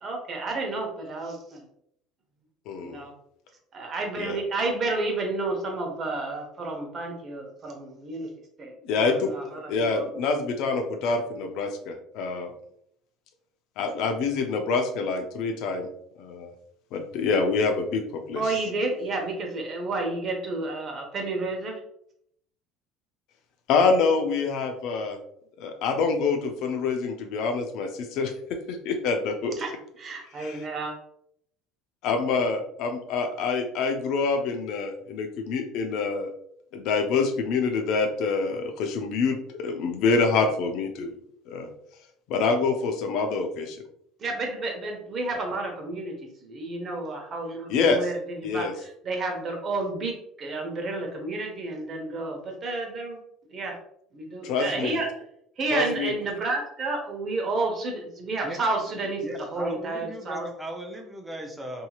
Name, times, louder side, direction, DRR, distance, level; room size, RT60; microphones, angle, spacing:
voice 1, 0.0-1.6 2.8-3.1 3.7-8.3 8.6-8.7 9.0-9.6 9.9-10.0 18.3-21.8 29.6-29.7 30.0-30.9 44.2-46.1 46.4-53.2 53.5-53.7 54.1-55.1 55.6-59.2 59.5-60.5, right 2 dB, 40° right, 2 dB, 0.9 m, -31 dB
voice 2, 2.7-3.0 4.2-4.4 8.8-9.3 9.7-12.5 13.8-15.9 16.2-16.5 16.9-18.6 23.7-25.2 25.6-28.3 28.7-29.5 30.4-30.7 32.0-36.3 36.7-41.1 41.5-41.7 42.3-43.8 47.7-48.1 48.4-48.7 54.4-55.0 55.7-56.2, left 4 dB, 65° left, 5 dB, 0.5 m, -26 dB
voice 3, 59.2-61.9, right 1 dB, 10° right, 2 dB, 0.7 m, -37 dB
2.8 x 2.7 x 2.3 m, 0.72 s
hypercardioid pair, 75°, 0 cm